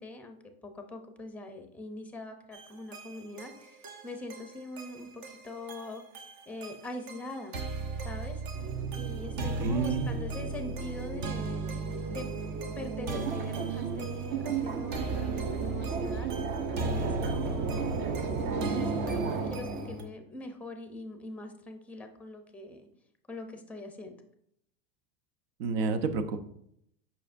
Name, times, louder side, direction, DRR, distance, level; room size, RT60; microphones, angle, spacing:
voice 1, 0.0-6.0 6.5-7.6 8.0-12.3 12.7-16.3 16.8-17.9 18.4-22.9 23.3-24.2, left 2 dB, 5° left, 6 dB, 0.6 m, -43 dB
sound 1, 2.5-20.0, right 2 dB, 55° right, 1.0 m, -37 dB
sound 2, 8.5-20.0, right 5 dB, 35° right, 0.6 m, -35 dB
voice 2, 9.6-10.0 25.6-26.4, right 5 dB, 75° right, 10 dB, 0.8 m, -29 dB
7.4 x 5.6 x 2.6 m, 0.72 s
supercardioid pair, 145°, 30 cm